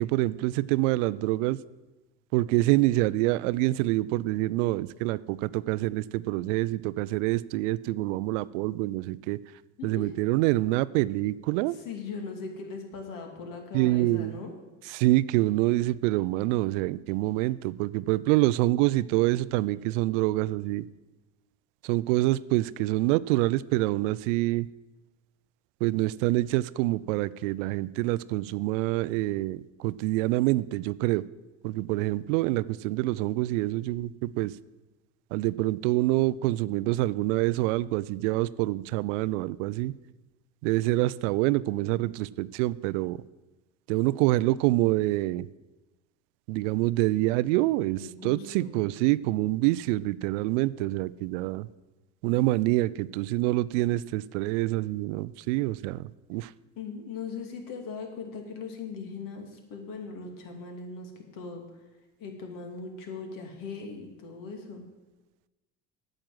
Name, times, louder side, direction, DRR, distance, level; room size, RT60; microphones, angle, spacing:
voice 1, 0.0-1.6 2.3-9.4 9.8-11.8 13.7-14.4 14.9-20.8 21.8-24.7 25.8-31.2 31.6-34.5 35.3-39.9 40.6-43.2 43.9-45.5 46.5-51.7 52.2-56.5, right 18 dB, 70° right, 19 dB, 0.5 m, -26 dB
voice 2, 9.8-10.1 11.7-14.5 48.0-48.8 56.8-61.6 62.2-64.8, left 4 dB, 55° left, 3 dB, 2.6 m, -39 dB
8.9 x 7.7 x 7.6 m, 1.1 s
hypercardioid pair, 70°, 39 cm